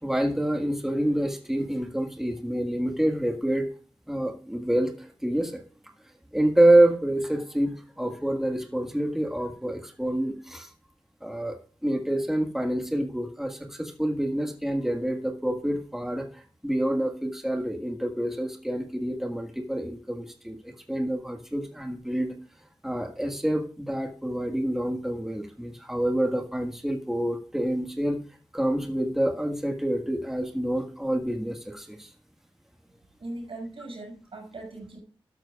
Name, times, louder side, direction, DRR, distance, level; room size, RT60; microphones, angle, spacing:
voice 1, 0.0-3.7 4.1-5.6 6.3-10.7 11.2-22.4 22.8-28.2 28.5-32.1, right 1 dB, 5° right, 3 dB, 1.7 m, -27 dB
voice 2, 33.2-35.0, right 2 dB, 80° right, 0 dB, 6.1 m, -39 dB
12.5 x 12.0 x 2.4 m, 0.39 s
cardioid pair, 50°, 9 cm